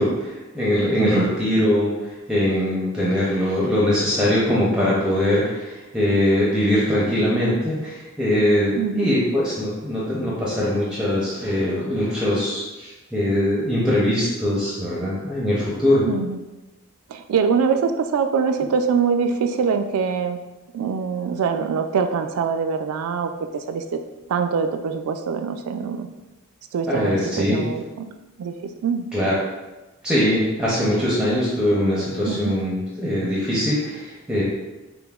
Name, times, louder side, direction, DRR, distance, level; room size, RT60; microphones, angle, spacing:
voice 1, 0.0-16.0 26.9-27.6 29.1-29.4 30.0-34.4, left 1 dB, 5° right, -7 dB, 0.5 m, -22 dB
voice 2, 1.0-1.3 8.8-9.1 16.1-16.4 17.1-20.4 20.7-24.0 24.3-26.1 26.7-28.1 28.4-28.5 28.8-29.1 32.3-32.5, right 6 dB, 85° right, 8 dB, 0.3 m, -23 dB
5.5 x 2.1 x 2.3 m, 1.1 s
head